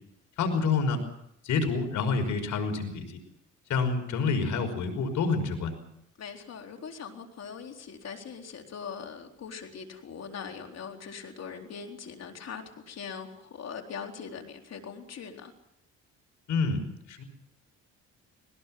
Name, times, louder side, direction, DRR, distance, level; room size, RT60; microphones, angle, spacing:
voice 1, 0.4-1.0 1.4-3.2 3.7-5.7 16.5-16.8 17.1-17.2, left 4 dB, 75° left, 6 dB, 5.5 m, -28 dB
voice 2, 6.2-15.5, left 6 dB, 55° left, 3 dB, 3.9 m, -41 dB
21.0 x 19.5 x 7.7 m, 0.76 s
cardioid pair, 90°, 30 cm